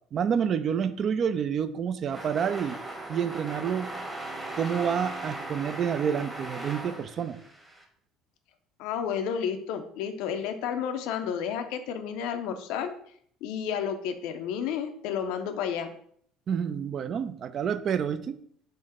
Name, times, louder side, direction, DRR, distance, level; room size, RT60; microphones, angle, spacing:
voice 1, 0.1-2.8 3.1-4.0 4.6-7.4 16.5-18.4, right 7 dB, 45° right, 12 dB, 0.3 m, -28 dB
sound 1, 2.1-7.8, right 2 dB, 10° right, 1.0 m, -38 dB
voice 2, 8.8-12.9 13.4-15.9, left 8 dB, 65° left, 8 dB, 0.4 m, -31 dB
3.7 x 2.6 x 4.2 m, 0.63 s
figure-of-eight pair, 60°, 0 cm